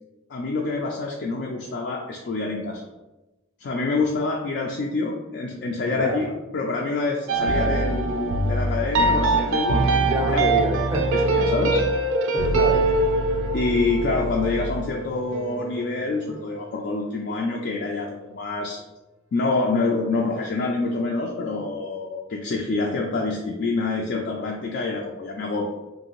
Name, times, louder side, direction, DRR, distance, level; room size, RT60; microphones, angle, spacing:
voice 1, 0.3-2.8 3.6-6.3 6.5-9.8 10.3-10.4 11.3-11.8 13.5-18.8 19.3-25.7, left 3 dB, 60° left, -1 dB, 0.3 m, -26 dB
voice 2, 5.7-6.2 10.0-11.1 12.3-12.9, equal, 20° right, 1 dB, 0.4 m, -27 dB
sound 1, 7.3-16.4, right 2 dB, 85° right, 0.4 m, -23 dB
2.7 x 2.5 x 2.9 m, 1.1 s
head